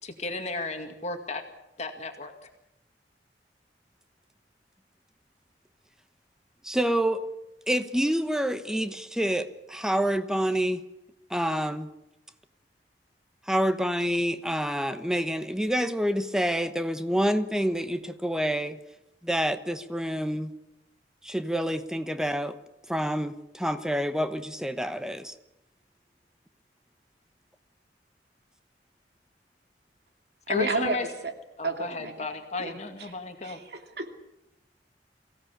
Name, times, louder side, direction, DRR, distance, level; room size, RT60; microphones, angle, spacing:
voice 1, 0.0-1.4 1.8-2.3 30.5-31.1 31.6-33.6, left 3 dB, 40° left, 2.1 m, -34 dB
voice 2, 6.6-7.3 7.7-10.8 11.3-11.9 13.5-18.8 19.2-20.5 21.2-22.6 22.9-25.3, equal, 5° right, 1.1 m, -27 dB
voice 3, 30.5-31.0 31.2-31.3 31.6-32.3 32.6-33.1 33.4-34.2, right 2 dB, 65° right, 2.7 m, -31 dB
23.5 x 16.5 x 8.6 m
head